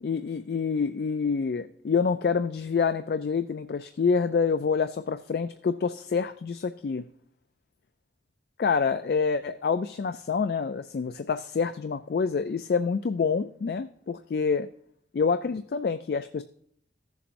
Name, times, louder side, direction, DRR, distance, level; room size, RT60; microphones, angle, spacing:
voice 1, 0.0-7.1 8.6-14.7 15.1-16.4, left 5 dB, 55° left, 10 dB, 0.3 m, -27 dB
15.0 x 7.1 x 2.6 m, 0.67 s
head